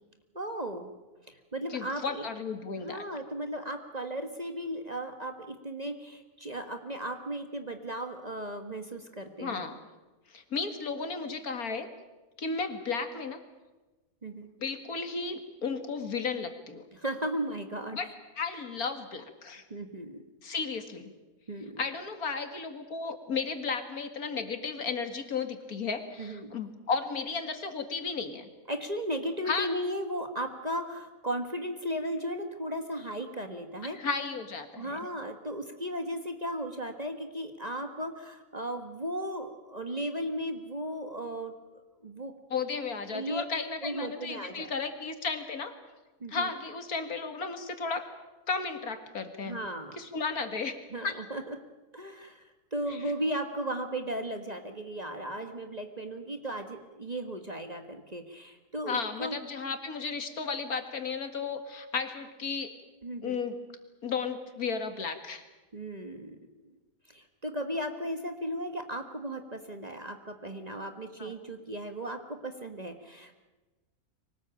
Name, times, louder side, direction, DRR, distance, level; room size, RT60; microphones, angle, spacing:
voice 1, 0.3-0.9 1.3-2.3 2.8-9.6 14.2-14.5 16.9-18.0 19.7-20.2 21.5-21.8 26.2-26.6 28.7-34.0 34.8-42.3 43.1-43.4 43.8-44.7 46.2-46.5 49.4-50.0 50.9-51.6 51.9-59.4 63.0-63.4 65.7-66.4 66.6-66.7 67.1-73.3, right 1 dB, 30° right, 6 dB, 1.6 m, -36 dB
voice 2, 1.7-3.0 9.4-9.8 10.3-11.9 12.4-13.4 14.6-16.8 17.9-18.1 18.4-19.6 20.4-21.1 21.8-28.5 29.5-29.7 34.0-35.0 42.5-45.7 46.3-48.1 48.5-49.6 50.0-50.7 51.0-51.1 52.9-53.0 58.9-62.7 63.2-63.6 64.0-65.4 71.2-71.3, left 5 dB, 90° left, 8 dB, 2.5 m, -34 dB
24.0 x 19.0 x 9.0 m, 1.2 s
omnidirectional pair, 1.5 m